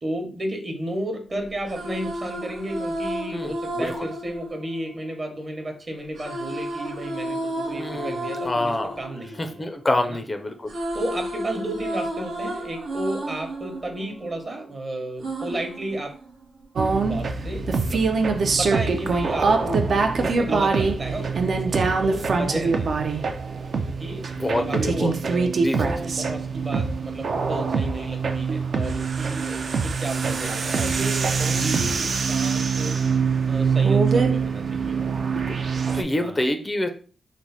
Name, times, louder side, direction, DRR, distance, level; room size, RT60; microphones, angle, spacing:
voice 1, 0.0-8.7 9.0-9.6 10.1-10.2 10.9-16.1 17.0-18.1 18.5-19.9 20.2-22.9 24.0-25.5 25.8-32.9 33.5-35.0 36.0-36.4, right 1 dB, 40° right, 3 dB, 0.9 m, -33 dB
sound 1, 1.5-5.6 6.2-10.2 10.5-14.7 15.2-16.7, right 1 dB, 85° right, 0.7 m, -32 dB
voice 2, 3.3-4.1 7.7-9.0 9.4-10.7 24.4-25.2 25.6-25.9 31.6-32.1 35.5-36.9, left 1 dB, 25° left, 6 dB, 0.4 m, -27 dB
sound 2, 16.8-36.0, right 4 dB, 60° right, 0.4 m, -23 dB
3.1 x 2.0 x 4.0 m, 0.41 s
cardioid pair, 75°, 0 cm